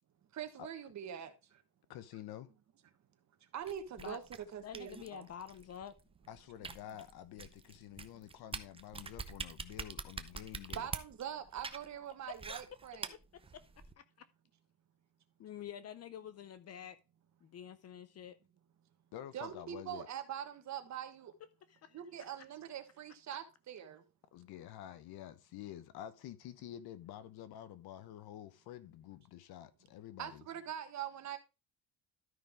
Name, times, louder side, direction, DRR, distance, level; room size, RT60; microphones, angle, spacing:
voice 1, 0.3-1.3 3.5-4.2 4.5-5.2 10.7-13.1 19.3-21.3 21.9-24.0 30.2-31.4, right 9 dB, 45° right, 1.4 m, -43 dB
voice 2, 1.9-2.5 6.3-10.9 19.1-20.1 24.3-30.4, left 11 dB, 70° left, 1.0 m, -49 dB
sound 1, 3.7-13.9, right 4 dB, 15° right, 0.6 m, -46 dB
voice 3, 4.6-5.9 13.5-14.3 15.4-17.0 17.4-18.4 21.7-22.5, left 9 dB, 40° left, 0.5 m, -49 dB
12.5 x 5.3 x 3.5 m
cardioid pair, 130°, 40 cm